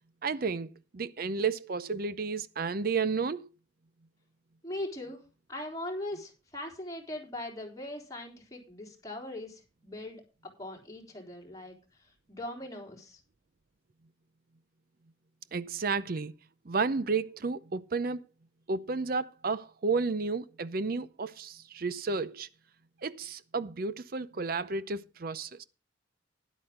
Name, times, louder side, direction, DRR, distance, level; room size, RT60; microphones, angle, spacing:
voice 1, 0.2-3.5 15.5-16.3 16.7-18.2 18.7-22.5 23.0-25.6, right 4 dB, 50° right, 0.6 m, -32 dB
voice 2, 4.6-5.2 5.5-10.2 10.6-13.2, left 1 dB, 20° left, 3.6 m, -40 dB
12.0 x 11.0 x 3.8 m
head